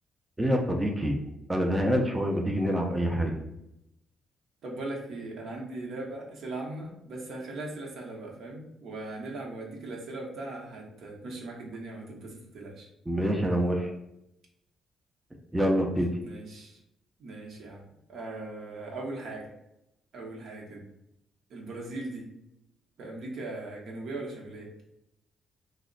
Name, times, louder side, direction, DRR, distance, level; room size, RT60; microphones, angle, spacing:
voice 1, 0.4-1.2 1.5-3.4 13.1-13.9 15.5-16.2, equal, 10° right, 1 dB, 0.5 m, -26 dB
voice 2, 4.6-12.9 16.2-16.8 17.2-17.8 18.1-19.5 20.1-20.8 21.5-22.3 23.0-24.7, right 2 dB, 70° right, -1 dB, 0.8 m, -39 dB
3.0 x 2.1 x 3.8 m, 0.84 s
cardioid pair, 90°, 0 cm